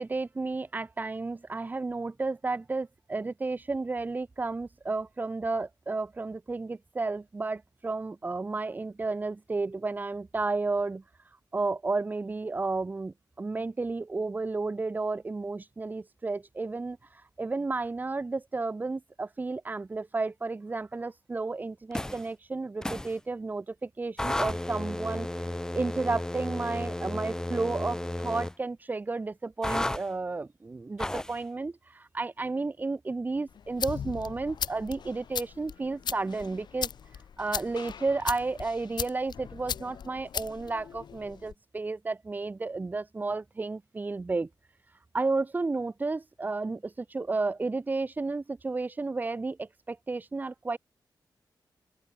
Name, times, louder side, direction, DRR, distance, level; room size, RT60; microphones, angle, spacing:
voice 1, 0.0-11.0 11.5-17.0 17.4-25.3 25.7-36.9 37.4-44.5 45.1-50.8, right 3 dB, 20° right, 1.0 m, -32 dB
sound 1, 21.9-22.3 22.8-23.1 24.2-28.5 29.6-30.0 31.0-31.4, left 1 dB, 10° left, 1.2 m, -33 dB
sound 2, 33.5-41.5, left 7 dB, 70° left, 1.7 m, -38 dB
open air
wide cardioid pair, 145°, 8 cm